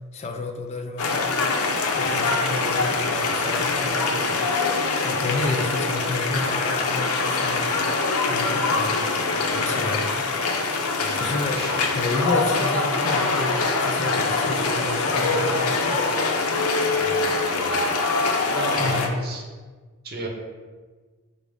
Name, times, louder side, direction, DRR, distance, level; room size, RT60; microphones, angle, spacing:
voice 1, 0.1-1.3 1.9-4.4 5.0-7.7 8.2-9.0 9.5-10.3 11.1-11.6 11.9-16.1 18.8-19.2, left 2 dB, 30° left, 4 dB, 0.3 m, -30 dB
sound 1, 1.0-19.1, left 3 dB, 85° left, 0.5 m, -24 dB
voice 2, 5.0-5.4 11.0-11.9 17.0-17.8 18.1-18.2 18.5-19.4 20.0-20.3, right 2 dB, 45° right, 0 dB, 0.7 m, -35 dB
5.1 x 2.0 x 4.8 m, 1.4 s
head